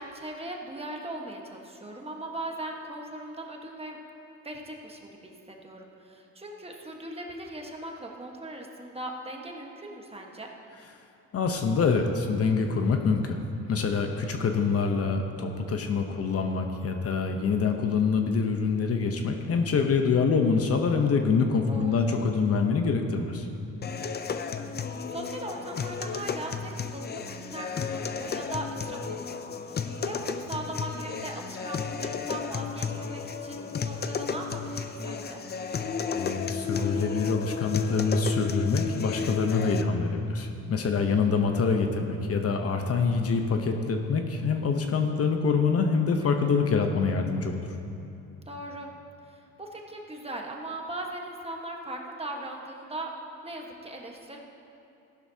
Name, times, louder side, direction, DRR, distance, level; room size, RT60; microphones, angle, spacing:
voice 1, 0.0-4.0 4.4-10.5 21.7-22.2 24.5-24.7 25.1-29.4 29.6-35.4 40.9-41.3 46.2-46.7 48.5-48.9 49.3-53.1 53.4-54.4, right 1 dB, 20° right, 0 dB, 1.4 m, -39 dB
voice 2, 11.3-13.4 13.7-23.5 36.1-47.7, left 5 dB, 50° left, 4 dB, 0.9 m, -25 dB
sound 1, 23.8-39.8, left 6 dB, 35° left, 0.6 m, -33 dB
14.5 x 11.0 x 2.8 m, 2.8 s
cardioid pair, 90°, 30 cm